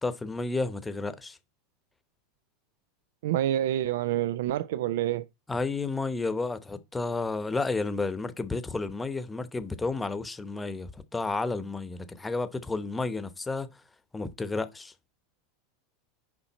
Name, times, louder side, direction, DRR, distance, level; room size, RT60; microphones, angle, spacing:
voice 1, 0.0-1.4 5.5-13.7 14.1-14.9, left 3 dB, 10° left, 0.9 m, -31 dB
voice 2, 3.2-5.3, right 12 dB, 80° right, 0.4 m, -27 dB
7.2 x 5.1 x 4.1 m
supercardioid pair, 115°, 0 cm